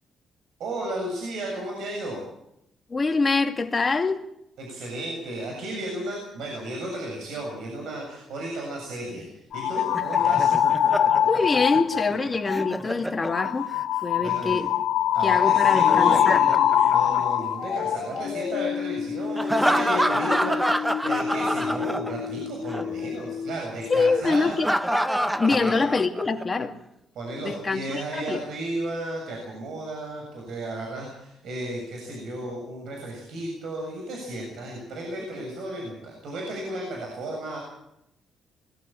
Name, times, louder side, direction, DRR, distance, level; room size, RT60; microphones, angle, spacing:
voice 1, 0.6-2.2 4.6-9.3 9.5-10.5 14.2-14.6 15.1-24.6 25.4-25.8 27.1-37.6, right 1 dB, 75° right, 0 dB, 7.4 m, -34 dB
voice 2, 2.9-4.2 11.3-13.7 14.0-14.7 15.2-16.5 23.9-24.7 25.4-26.7 27.4-28.4, left 4 dB, 30° left, 4 dB, 2.5 m, -24 dB
sound 1, 9.5-12.1 12.5-12.8 13.2-23.6 23.8-24.5, left 9 dB, 65° left, 2.9 m, -24 dB
Laughter, 9.8-13.8 15.5-17.7 19.4-22.4 22.7-22.8 24.3-26.4, equal, 5° right, 1.2 m, -28 dB
21.5 x 14.5 x 8.8 m, 0.82 s
cardioid pair, 90°, 0 cm